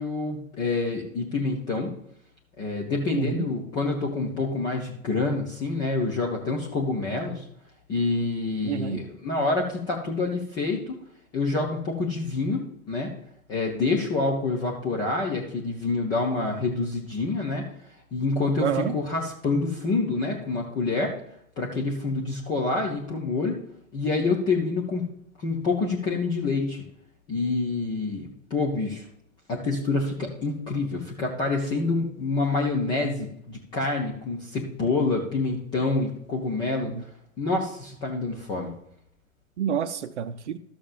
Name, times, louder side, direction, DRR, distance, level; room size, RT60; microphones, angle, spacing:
voice 1, 0.0-1.9 2.6-7.4 7.9-11.0 11.3-13.1 13.5-17.7 18.1-21.1 21.6-23.6 23.9-25.0 25.4-26.8 27.3-29.1 29.5-36.9 37.4-38.7, left 3 dB, 10° left, 0.5 m, -27 dB
voice 2, 3.1-3.5 8.6-9.0 18.6-18.9 36.9-37.0 39.6-40.6, right 8 dB, 55° right, 0.6 m, -28 dB
13.0 x 7.2 x 2.5 m
figure-of-eight pair, 110°, 43 cm